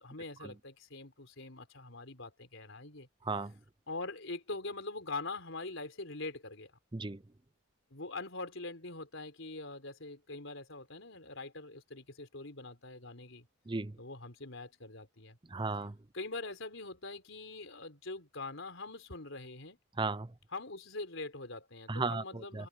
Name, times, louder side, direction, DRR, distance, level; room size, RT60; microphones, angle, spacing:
voice 1, 0.0-3.1 3.9-6.7 7.9-13.5 14.0-15.4 16.1-19.8 20.5-22.7, left 3 dB, 70° left, 4.2 m, -43 dB
voice 2, 6.9-7.2 13.7-14.0 15.5-16.0 20.0-20.3 21.9-22.7, right 3 dB, 20° right, 0.6 m, -35 dB
head